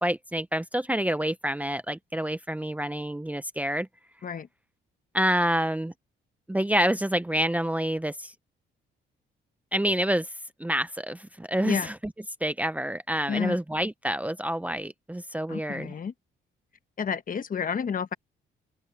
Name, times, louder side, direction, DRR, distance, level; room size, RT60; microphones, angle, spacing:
voice 1, 0.0-3.9 5.1-5.9 6.5-8.3 9.7-10.3 10.6-12.1 12.4-15.9, equal, 5° right, 0.8 m, -28 dB
voice 2, 13.3-13.6 15.5-16.1 17.0-18.1, left 6 dB, 45° left, 1.3 m, -30 dB
open air
cardioid pair, 90°, 20 cm